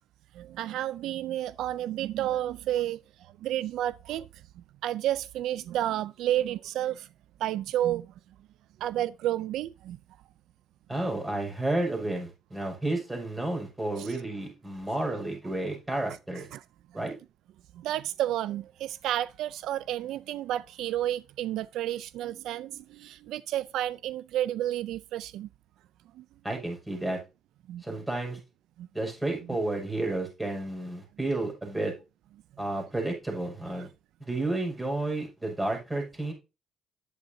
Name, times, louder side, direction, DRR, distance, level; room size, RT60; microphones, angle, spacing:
voice 1, 0.3-4.3 4.8-7.1 7.4-8.1 8.8-10.0 14.0-14.2 16.5-16.6 17.7-25.5 26.2-26.3 27.7-27.8 28.8-28.9, right 12 dB, 80° right, 0.3 m, -31 dB
voice 2, 10.9-16.5 16.9-17.1 26.4-27.2 27.8-28.4 28.9-31.9 32.6-33.9 34.2-36.3, right 2 dB, 15° right, 5.8 m, -31 dB
10.5 x 8.1 x 2.7 m
cardioid pair, 85°, 0 cm